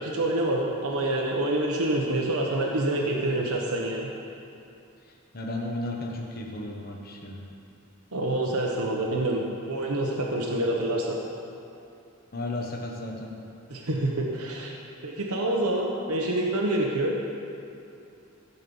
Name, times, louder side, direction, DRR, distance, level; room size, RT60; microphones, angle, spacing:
voice 1, 0.0-4.1 8.1-11.2 13.7-14.8 15.0-17.1, right 1 dB, 80° right, -1 dB, 1.1 m, -27 dB
voice 2, 5.3-7.4 12.3-13.3, left 2 dB, 40° left, -1 dB, 1.2 m, -34 dB
15.0 x 5.5 x 7.1 m, 2.7 s
head